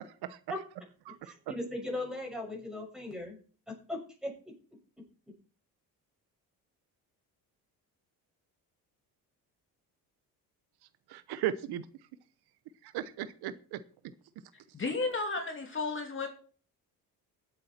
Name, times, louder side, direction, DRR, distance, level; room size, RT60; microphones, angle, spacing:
voice 1, 1.2-3.4 3.9-4.3, left 1 dB, ahead, 0 dB, 6.7 m, -37 dB
voice 2, 11.1-11.8 12.8-13.8, right 11 dB, 90° right, 14 dB, 1.0 m, -36 dB
voice 3, 14.7-16.3, left 3 dB, 30° left, 3 dB, 2.7 m, -33 dB
18.0 x 8.6 x 4.4 m, 0.41 s
cardioid pair, 110°, 38 cm